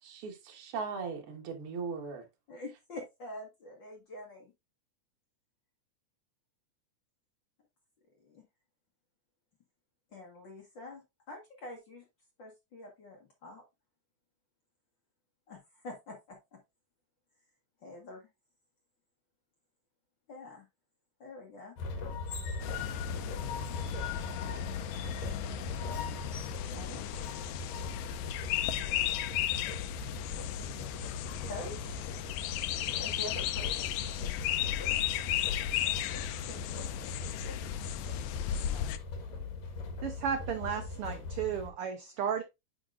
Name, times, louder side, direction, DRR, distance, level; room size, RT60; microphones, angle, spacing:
voice 1, 0.0-2.3, right 5 dB, 55° right, 2.2 m, -38 dB
voice 2, 2.5-4.5 8.2-8.4 10.1-12.0 12.4-13.6 15.5-16.6 17.8-18.3 20.3-20.7 21.2-21.8 25.7-26.2 26.6-27.1 28.8-29.2 31.4-32.0 33.0-34.1 35.8-36.0 36.5-37.2 38.7-38.9, left 2 dB, 45° left, 1.8 m, -46 dB
sound 1, 21.8-41.7, left 3 dB, 65° left, 2.4 m, -40 dB
sound 2, 22.6-39.0, left 12 dB, 85° left, 2.0 m, -35 dB
voice 3, 40.0-42.4, right 8 dB, 80° right, 1.3 m, -34 dB
9.9 x 5.2 x 2.5 m
omnidirectional pair, 3.4 m